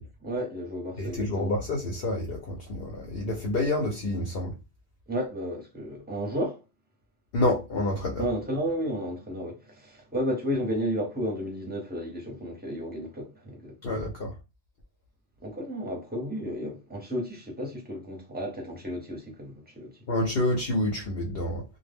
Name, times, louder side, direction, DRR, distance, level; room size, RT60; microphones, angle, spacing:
voice 1, 0.2-1.5 5.1-6.6 8.2-14.0 15.4-20.0, equal, 10° right, 0.6 m, -33 dB
voice 2, 1.0-4.5 7.3-8.2 13.8-14.3 20.1-21.6, left 1 dB, 60° left, 0.7 m, -28 dB
2.1 x 2.1 x 3.3 m
omnidirectional pair, 1.3 m